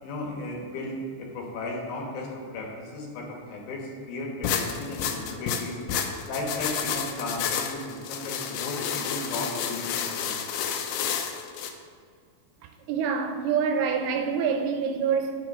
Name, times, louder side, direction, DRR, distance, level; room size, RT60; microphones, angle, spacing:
voice 1, 0.0-5.8 6.3-10.4, left 2 dB, 70° left, 3.1 m, -35 dB
sound 1, 4.4-11.7, left 7 dB, 85° left, 2.8 m, -30 dB
voice 2, 12.9-15.4, right 6 dB, 80° right, 2.5 m, -26 dB
9.5 x 6.3 x 5.0 m
omnidirectional pair, 4.7 m